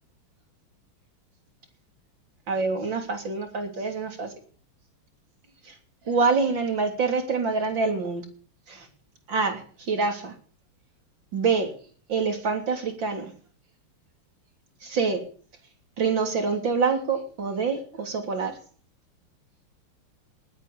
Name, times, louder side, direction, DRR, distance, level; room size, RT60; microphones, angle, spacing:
voice 1, 2.5-4.3 5.7-5.8 6.1-8.3 8.7-8.9 9.3-10.3 11.3-11.7 12.1-13.3 14.8-15.2 16.0-18.6, right 4 dB, 60° right, 5 dB, 4.0 m, -26 dB
19.5 x 9.3 x 7.0 m, 0.43 s
omnidirectional pair, 2.4 m